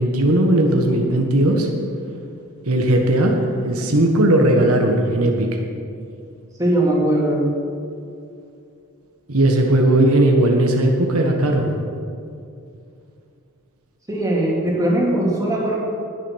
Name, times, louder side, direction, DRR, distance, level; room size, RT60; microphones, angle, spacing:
voice 1, 0.0-1.7 2.7-3.4 3.6-5.5 9.3-11.7, right 1 dB, 75° right, 2 dB, 1.5 m, -17 dB
voice 2, 6.6-7.4 14.1-15.8, right 1 dB, 15° right, -4 dB, 2.9 m, -19 dB
20.0 x 7.6 x 6.5 m, 2.5 s
head